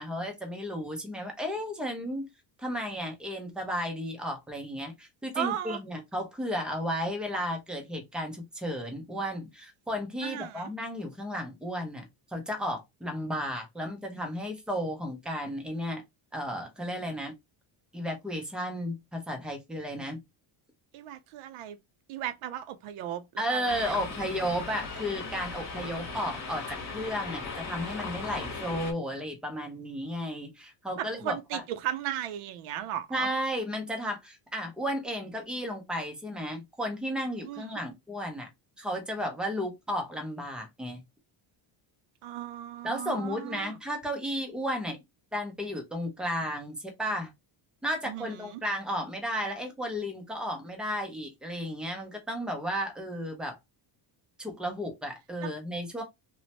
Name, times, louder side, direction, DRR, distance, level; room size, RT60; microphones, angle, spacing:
voice 1, 0.0-2.3 2.6-12.0 12.3-16.0 16.3-17.3 17.9-20.2 23.4-31.6 33.1-38.5 38.8-41.0 42.8-45.0 45.3-47.3 47.8-53.6 54.4-56.0, equal, ahead, 0.3 m, -33 dB
voice 2, 5.3-5.8 10.2-10.7 20.9-21.8 22.1-24.0 31.0-33.3 37.4-37.8 42.2-43.8 48.0-48.6 55.4-55.5, right 11 dB, 80° right, 0.6 m, -36 dB
sound 1, 23.7-28.9, left 4 dB, 35° left, 0.8 m, -38 dB
3.1 x 2.1 x 2.7 m
cardioid pair, 155°, 50 cm